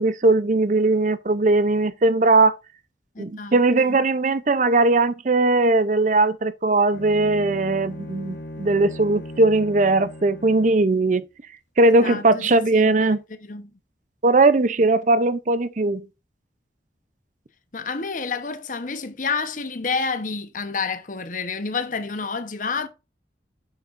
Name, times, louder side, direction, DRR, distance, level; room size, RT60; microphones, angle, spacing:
voice 1, 0.0-2.6 3.2-11.2 11.8-13.2 14.2-16.1, right 2 dB, 45° right, 0.6 m, -19 dB
voice 2, 3.1-4.0 11.9-13.7 17.7-22.9, left 4 dB, 45° left, 1.0 m, -29 dB
Bowed string instrument, 6.9-11.0, left 1 dB, 85° left, 1.5 m, -38 dB
8.0 x 6.9 x 2.6 m
head